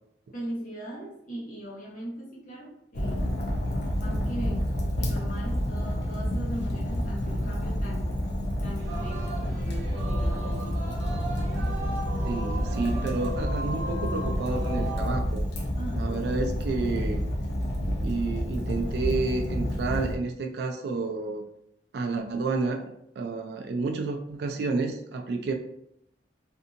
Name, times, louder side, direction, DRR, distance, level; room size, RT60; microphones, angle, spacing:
voice 1, 0.3-3.3 4.0-4.6 5.0-8.1 8.6-10.9 11.3-11.8 15.7-16.5, right 1 dB, 45° left, -4 dB, 1.0 m, -39 dB
Fire, 2.9-20.2, equal, 65° left, 0.5 m, -29 dB
Singing, 8.8-15.2, right 1 dB, 80° right, 0.8 m, -37 dB
voice 2, 12.2-15.4 15.9-17.3 18.0-21.4 21.9-22.8 23.2-25.5, right 3 dB, 60° right, 4 dB, 0.3 m, -30 dB
2.6 x 2.6 x 2.5 m, 0.76 s
head